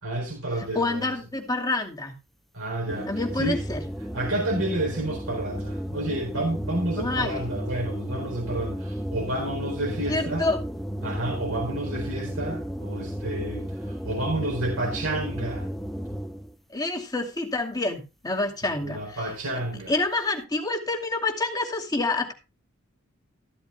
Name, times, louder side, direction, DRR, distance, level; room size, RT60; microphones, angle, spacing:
voice 1, 0.0-1.1 2.5-3.1 3.3-3.6 4.1-10.5 11.0-15.7 18.8-19.9, right 1 dB, 85° right, 4.3 m, -30 dB
voice 2, 0.6-2.1 3.1-3.8 7.0-7.4 10.1-10.6 16.7-19.2 19.9-22.3, left 2 dB, 20° left, 2.5 m, -27 dB
sound 1, 2.9-16.5, equal, ahead, 0.9 m, -33 dB
14.5 x 13.0 x 2.2 m
head